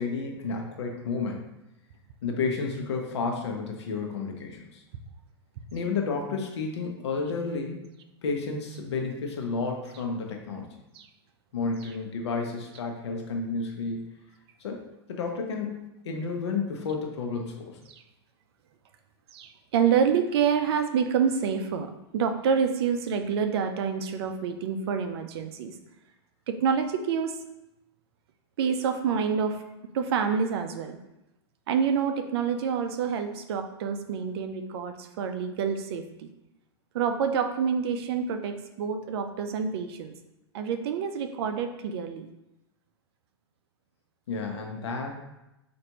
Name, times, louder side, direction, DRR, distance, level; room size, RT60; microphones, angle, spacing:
voice 1, 0.0-1.4 2.2-4.8 5.7-7.8 8.2-10.8 11.5-14.0 14.6-14.8 15.1-17.8 44.3-45.2, left 4 dB, 80° left, 2 dB, 0.8 m, -31 dB
voice 2, 19.3-25.8 26.5-27.4 28.6-29.6 29.9-31.0 31.7-36.3 36.9-40.1 40.5-42.3, right 6 dB, 65° right, 7 dB, 0.5 m, -27 dB
4.5 x 2.6 x 2.9 m, 0.92 s
hypercardioid pair, 120°, 14 cm